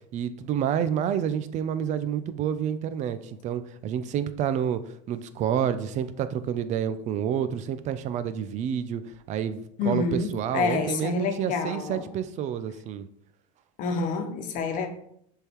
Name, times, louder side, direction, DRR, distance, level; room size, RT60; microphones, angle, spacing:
voice 1, 0.1-4.8 5.1-9.0 9.3-13.1, right 9 dB, 45° right, 12 dB, 0.6 m, -29 dB
voice 2, 9.8-12.1 13.8-15.0, left 4 dB, 50° left, 6 dB, 1.1 m, -28 dB
6.8 x 3.8 x 4.5 m, 0.70 s
supercardioid pair, 130°, 18 cm